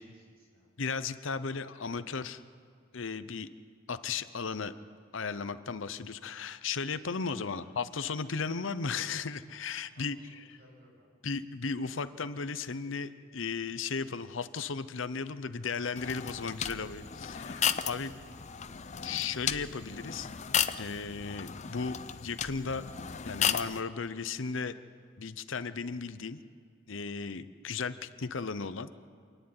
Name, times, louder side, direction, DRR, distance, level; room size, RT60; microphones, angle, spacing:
voice 1, 0.0-0.7 7.5-7.7 9.9-11.1 18.0-18.8, equal, 50° right, -2 dB, 7.6 m, -62 dB
voice 2, 0.8-2.4 2.9-3.5 3.9-4.7 5.1-10.6 11.2-18.1 19.0-20.3 20.8-22.8 23.2-24.8 25.2-26.4 26.9-28.9, left 5 dB, 70° left, 13 dB, 0.8 m, -35 dB
sound 1, 16.0-23.8, left 8 dB, 35° left, 0.6 m, -34 dB
27.0 x 10.0 x 9.7 m, 2.2 s
head